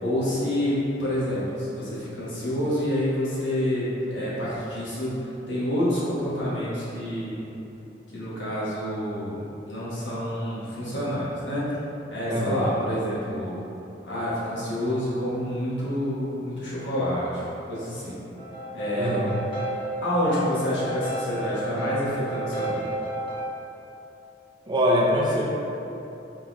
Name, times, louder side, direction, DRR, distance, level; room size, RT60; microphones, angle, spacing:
voice 1, 0.0-7.4 8.1-11.7 12.1-13.6 14.0-18.1 18.7-19.1 19.7-22.8, equal, 80° left, -9 dB, 1.3 m, -28 dB
voice 2, 12.3-12.7 18.9-19.3 24.7-25.5, equal, 25° right, -5 dB, 0.6 m, -23 dB
sound 1, 18.4-23.5, right 1 dB, 30° left, 0.9 m, -32 dB
3.8 x 3.6 x 3.1 m, 3.0 s
head